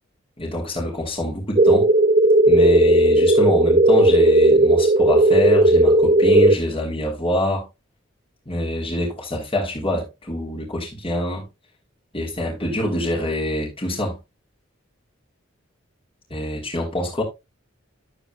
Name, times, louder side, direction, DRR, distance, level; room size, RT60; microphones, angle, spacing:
voice 1, 0.4-1.9 2.5-7.7 8.5-11.5 12.1-14.2 16.3-17.2, left 1 dB, 25° left, 3.5 m, -25 dB
sound 1, 1.6-6.5, right 1 dB, 30° right, 0.5 m, -15 dB
13.5 x 8.2 x 2.3 m
head